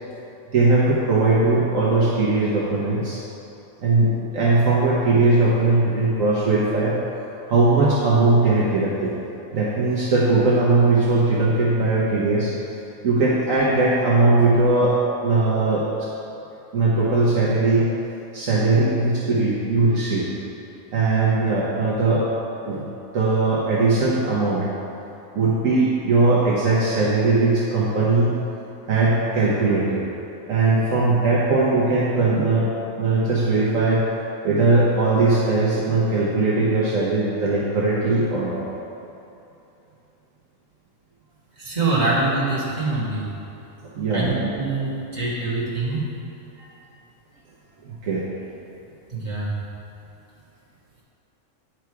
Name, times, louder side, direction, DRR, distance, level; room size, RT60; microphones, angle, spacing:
voice 1, 0.5-3.2 3.8-6.9 7.5-9.2 9.5-12.5 13.0-15.0 15.2-16.1 16.7-17.9 18.3-20.3 20.9-22.3 22.6-22.8 23.1-24.7 25.3-28.3 28.9-30.1 30.5-32.7 33.0-34.0 34.4-38.6 43.8-44.5 46.6-46.7 47.8-48.2, right 3 dB, 65° right, -6 dB, 1.3 m, -19 dB
voice 2, 41.6-43.3 44.1-46.0 49.1-49.5, right 3 dB, 30° right, -8 dB, 2.0 m, -24 dB
9.6 x 4.8 x 4.6 m, 2.9 s
omnidirectional pair, 1.5 m